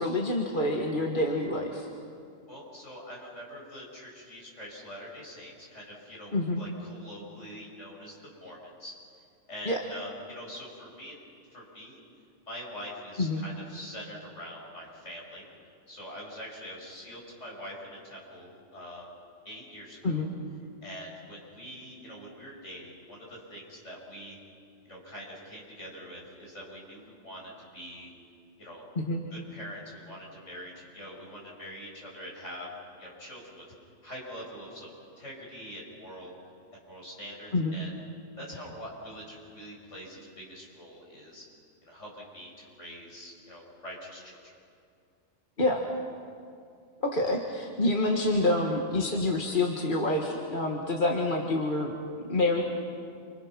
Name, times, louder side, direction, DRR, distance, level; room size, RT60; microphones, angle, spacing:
voice 1, 0.0-1.9 6.3-6.6 9.7-9.8 13.2-13.4 20.0-20.3 29.0-29.2 37.5-37.8 45.6-45.8 47.0-51.9 52.3-52.7, left 2 dB, 40° left, 0 dB, 1.9 m, -27 dB
voice 2, 2.5-8.9 9.5-11.2 11.5-12.0 12.5-15.5 15.9-19.1 19.5-20.3 20.8-24.4 24.9-28.1 28.6-28.9 29.3-32.7 33.0-33.6 34.0-36.3 36.9-37.9 38.4-41.5 41.8-44.5, equal, 65° left, -3 dB, 6.9 m, -44 dB
29.0 x 26.5 x 6.1 m, 2.4 s
omnidirectional pair, 1.3 m